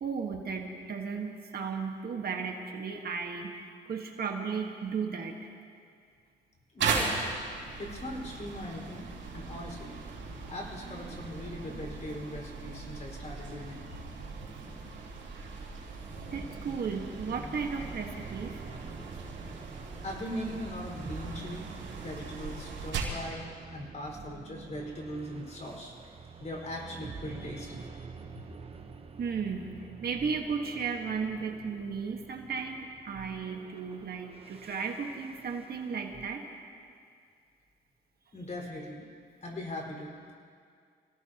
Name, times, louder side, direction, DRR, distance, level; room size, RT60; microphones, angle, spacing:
voice 1, 0.0-5.5 16.3-18.6 29.2-36.5, right 5 dB, 50° right, 2 dB, 1.7 m, -35 dB
voice 2, 6.7-7.1 7.8-9.1 9.3-9.9 10.5-14.0 20.0-21.7 22.0-23.4 23.7-26.1 26.4-28.0 38.3-39.0 39.4-40.1, left 1 dB, 35° left, -1 dB, 5.1 m, -40 dB
sound 1, 6.8-23.3, right 4 dB, 70° right, 4.5 m, -38 dB
sound 2, 17.8-36.3, right 5 dB, 30° right, 1.1 m, -47 dB
27.0 x 18.0 x 3.0 m, 2.2 s
cardioid pair, 90°, 20 cm